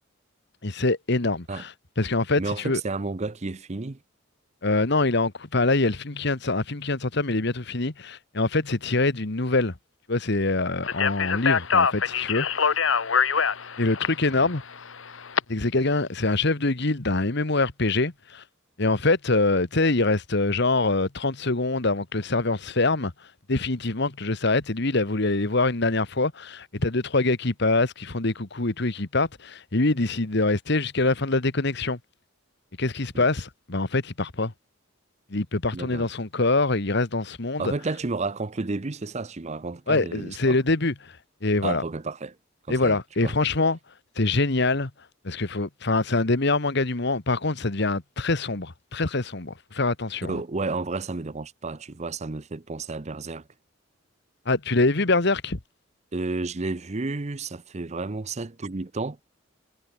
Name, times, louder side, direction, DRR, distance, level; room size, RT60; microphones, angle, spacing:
voice 1, 0.6-1.7 2.0-2.8 4.6-9.7 10.1-12.7 13.8-14.6 15.5-18.4 18.8-23.1 23.5-32.0 32.8-34.5 35.3-37.7 39.9-41.2 41.4-41.8 42.7-43.8 44.2-44.9 45.2-50.3 54.4-55.6, left 2 dB, 60° left, 1.6 m, -24 dB
voice 2, 2.4-4.0 14.3-14.5 33.1-33.2 35.7-36.1 37.6-40.6 41.6-42.4 42.7-43.3 50.2-53.5 56.1-59.2, right 3 dB, 35° right, 0.7 m, -31 dB
Speech, 10.8-15.4, left 6 dB, 75° left, 1.3 m, -24 dB
head